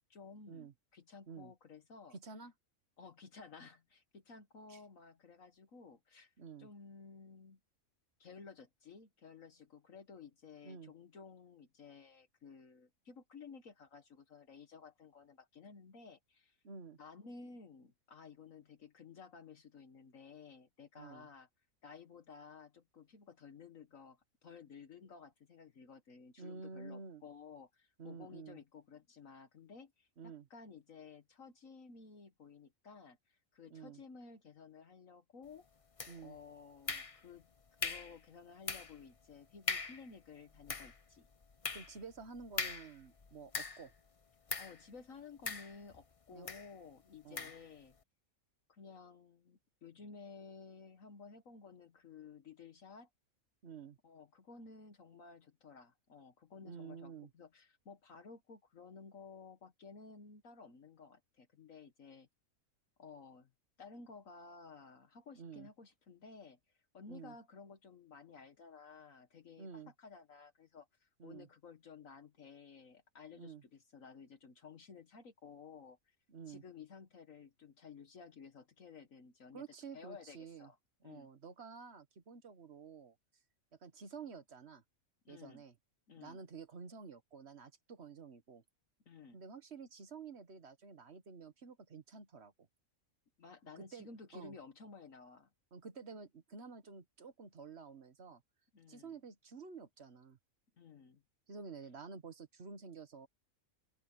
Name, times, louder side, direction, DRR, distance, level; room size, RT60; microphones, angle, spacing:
voice 1, 0.0-2.2 3.0-6.3 6.6-7.6 8.2-16.6 17.0-21.5 21.8-35.7 36.2-37.5 37.8-41.3 44.6-48.0 48.7-53.1 54.0-62.3 63.0-63.5 63.8-66.6 66.9-76.2 76.5-79.6 79.9-80.8 81.0-81.3 85.3-85.6 86.1-86.4 89.1-89.4 93.4-95.5 98.7-99.1 100.8-101.2, left 5 dB, 70° left, 1.8 m, -55 dB
voice 2, 2.1-2.5 4.7-4.8 6.4-6.7 10.6-10.9 16.6-17.0 20.9-21.3 26.4-27.2 28.0-28.6 30.2-30.5 33.7-34.0 36.1-36.4 41.7-43.9 46.3-46.5 47.2-47.5 53.6-54.0 56.6-57.3 65.4-65.7 67.1-67.3 69.6-69.9 71.2-71.5 73.3-73.6 76.3-76.6 79.5-80.7 81.0-83.2 83.8-84.8 85.3-85.7 86.2-88.6 89.3-92.5 93.8-94.5 95.7-98.4 98.9-100.4 101.5-103.3, right 5 dB, 50° right, 1.7 m, -50 dB
sound 1, 36.0-36.4 36.9-37.4 37.8-38.2 38.7-39.0 39.3-39.4 39.7-40.1 40.5-44.0 44.5-44.8 45.5-46.0 46.5-46.7 47.4-47.6, left 4 dB, 30° left, 0.9 m, -41 dB
open air
omnidirectional pair, 1.5 m